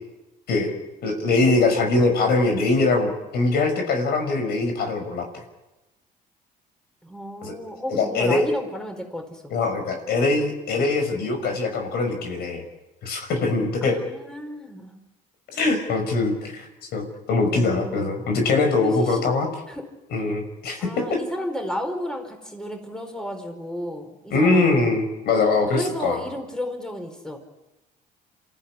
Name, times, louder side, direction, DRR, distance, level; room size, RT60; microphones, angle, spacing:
voice 1, 1.0-5.3 7.4-7.5 7.9-8.4 9.5-12.6 13.0-14.0 15.5-16.7 16.9-19.5 20.1-21.2 24.3-26.2, left 3 dB, 70° left, 5 dB, 5.7 m, -22 dB
voice 2, 7.0-9.5 13.8-15.0 17.5-18.1 18.8-19.2 19.7-19.8 20.8-24.9 25.7-27.4, equal, 5° left, 4 dB, 4.7 m, -33 dB
27.5 x 14.5 x 9.8 m, 1.0 s
cardioid pair, 110°, 17 cm